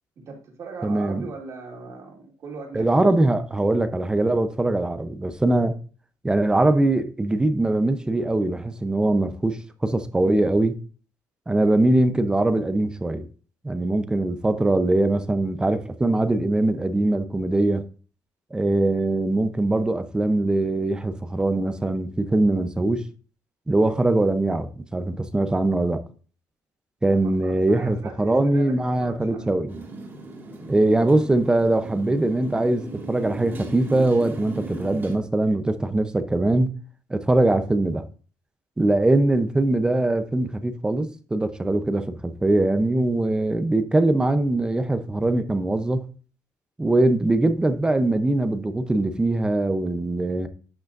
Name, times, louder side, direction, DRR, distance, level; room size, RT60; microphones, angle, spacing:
voice 1, 0.2-2.9 27.1-29.5, right 4 dB, 50° right, 2.7 m, -39 dB
voice 2, 0.8-1.3 2.7-5.8 6.2-10.8 11.5-13.3 13.6-17.8 18.5-23.0 23.7-26.0 27.0-29.8 30.7-36.7 37.1-38.1 38.8-46.0 46.8-50.5, right 2 dB, 10° right, 0.7 m, -22 dB
Motorcycle, 29.7-35.2, right 2 dB, 35° right, 2.2 m, -37 dB
10.5 x 6.2 x 2.6 m
cardioid pair, 125°, 7 cm